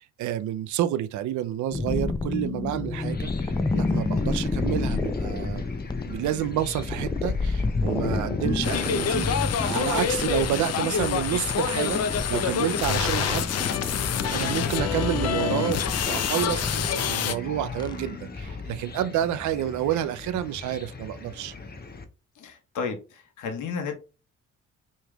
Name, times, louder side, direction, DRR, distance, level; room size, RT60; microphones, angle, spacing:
voice 1, 0.0-5.6 6.0-13.5 14.3-21.5, right 12 dB, 75° right, 0.5 m, -29 dB
sound 1, 1.7-18.7, left 3 dB, 15° left, 0.5 m, -30 dB
Chicken rooster / Cricket, 2.9-22.0, left 3 dB, 30° left, 0.9 m, -42 dB
sound 2, 8.6-17.4, left 8 dB, 55° left, 0.6 m, -27 dB
voice 2, 22.4-23.9, left 5 dB, 85° left, 1.1 m, -33 dB
4.9 x 3.2 x 2.3 m
cardioid pair, 90°, 30 cm